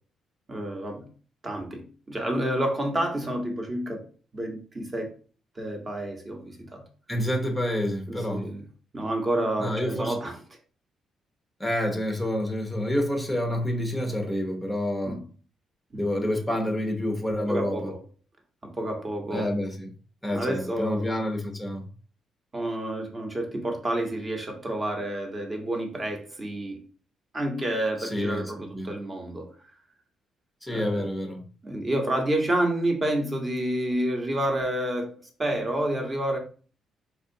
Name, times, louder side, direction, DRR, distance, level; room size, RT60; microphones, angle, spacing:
voice 1, 0.5-1.1 1.4-4.1 4.3-5.1 5.5-6.8 8.1-8.6 8.9-10.4 15.0-15.2 15.9-16.0 17.5-18.0 18.6-19.5 20.3-21.1 22.5-26.8 27.3-29.7 30.7-31.1 31.6-36.4, right 1 dB, 30° right, 1.0 m, -29 dB
voice 2, 7.1-8.5 9.6-10.2 11.6-15.2 16.0-17.9 19.3-19.9 20.2-21.9 28.0-28.9 30.6-31.4, left 1 dB, ahead, 0.7 m, -28 dB
4.4 x 2.4 x 2.7 m
cardioid pair, 90°, 0 cm